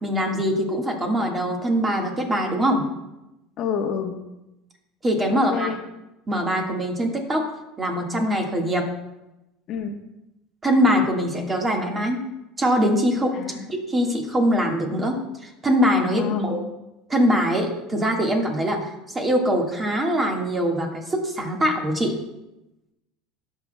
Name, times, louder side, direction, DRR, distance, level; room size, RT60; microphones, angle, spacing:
voice 1, 0.0-2.8 5.0-5.7 6.3-7.5 7.8-8.8 10.6-12.2 12.6-13.3 13.7-16.6 17.1-18.8 19.1-22.1, equal, 20° right, 1 dB, 1.6 m, -22 dB
voice 2, 3.6-4.2 5.3-5.8 9.7-10.0 13.3-13.6 16.0-16.6, left 6 dB, 50° left, 3 dB, 1.1 m, -28 dB
17.5 x 6.1 x 2.2 m, 0.93 s
supercardioid pair, 125°, 0 cm